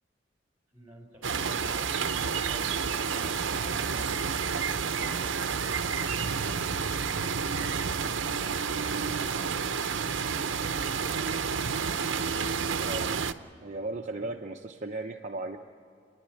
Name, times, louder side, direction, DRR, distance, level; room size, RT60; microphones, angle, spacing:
voice 1, 0.7-3.9 14.1-14.3, equal, 15° right, 2 dB, 3.9 m, -53 dB
sound 1, 1.2-13.3, right 6 dB, 80° right, 0.7 m, -30 dB
voice 2, 12.8-13.2 13.6-15.6, right 2 dB, 40° right, 2 dB, 0.8 m, -36 dB
29.5 x 11.0 x 8.7 m, 2.4 s
head